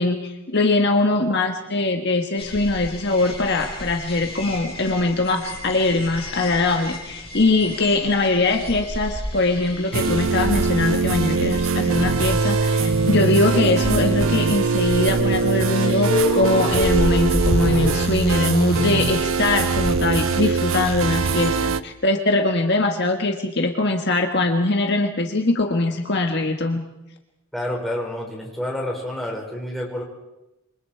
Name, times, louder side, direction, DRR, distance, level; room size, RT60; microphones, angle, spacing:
voice 1, 0.0-21.5 21.8-26.8, left 2 dB, 50° left, 4 dB, 1.6 m, -22 dB
sound 1, 2.4-21.5, left 1 dB, 25° left, 7.6 m, -30 dB
sound 2, 9.9-21.8, right 4 dB, 65° right, 0.7 m, -22 dB
voice 2, 27.5-30.0, left 1 dB, ahead, -3 dB, 5.6 m, -28 dB
28.0 x 25.0 x 4.7 m, 0.95 s
head